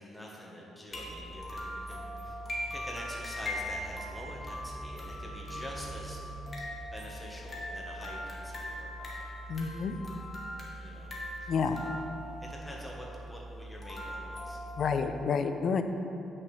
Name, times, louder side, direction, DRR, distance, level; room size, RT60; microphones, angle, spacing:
voice 1, 0.0-2.4 2.7-6.2 6.9-9.1 10.8-11.1 11.4-11.5 11.9-12.0 12.4-14.6, equal, 5° left, -3 dB, 1.0 m, -46 dB
sound 1, 0.9-15.2, equal, 35° left, 1.4 m, -40 dB
voice 2, 9.5-9.9 11.5-11.8 14.8-15.8, left 5 dB, 55° left, 8 dB, 0.4 m, -29 dB
8.0 x 5.9 x 3.2 m, 2.9 s
cardioid pair, 90°, 0 cm